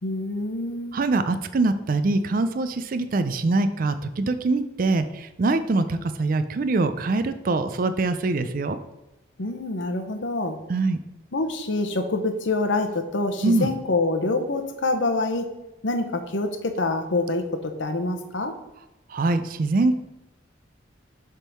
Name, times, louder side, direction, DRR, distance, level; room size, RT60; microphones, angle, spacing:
voice 1, 0.0-1.0 9.4-10.6 11.3-15.5 15.8-18.6, left 2 dB, 70° left, 6 dB, 0.9 m, -26 dB
voice 2, 0.9-8.8 10.7-11.0 13.4-13.7 19.1-20.0, right 3 dB, 45° right, 10 dB, 0.4 m, -23 dB
7.2 x 3.7 x 5.4 m, 0.97 s
head